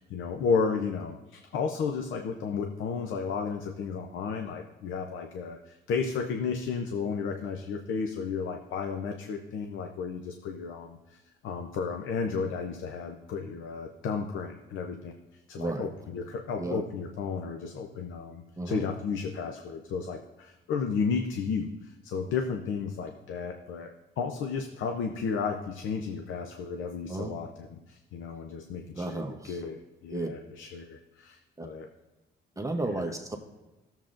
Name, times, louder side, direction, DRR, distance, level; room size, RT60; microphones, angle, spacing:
voice 1, 0.0-15.1 15.5-31.9, left 5 dB, 80° left, 5 dB, 0.7 m, -33 dB
voice 2, 15.6-15.9 16.6-16.8 18.6-18.9 27.1-27.4 28.9-29.6 30.1-30.3 31.6-31.7 32.6-33.4, right 2 dB, 15° right, 3 dB, 0.8 m, -33 dB
14.5 x 7.2 x 2.5 m, 1.1 s
cardioid pair, 90°, 20 cm